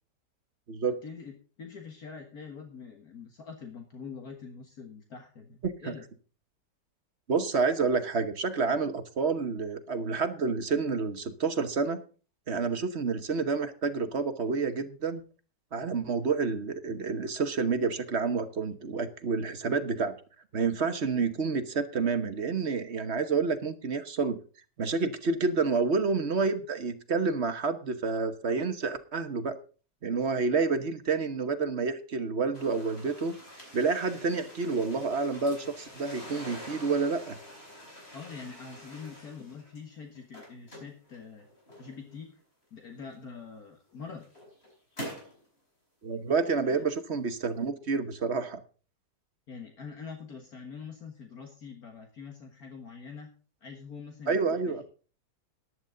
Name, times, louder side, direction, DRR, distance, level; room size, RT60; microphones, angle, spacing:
voice 1, 0.8-6.1 38.1-41.5 41.8-42.3 42.7-44.3 46.6-46.8 49.5-53.3 53.6-54.8, left 5 dB, 60° left, 4 dB, 2.0 m, -44 dB
voice 2, 5.6-5.9 7.3-12.0 12.5-15.2 15.7-20.1 20.5-24.4 24.8-29.5 30.0-33.4 33.7-37.4 46.0-48.6 54.3-54.8, right 4 dB, 45° right, 9 dB, 1.2 m, -29 dB
sound 1, 32.5-39.8 40.2-42.2 43.1-43.2 43.9-45.4, equal, 35° left, 5.6 m, -46 dB
14.0 x 11.0 x 3.9 m, 0.38 s
omnidirectional pair, 1.9 m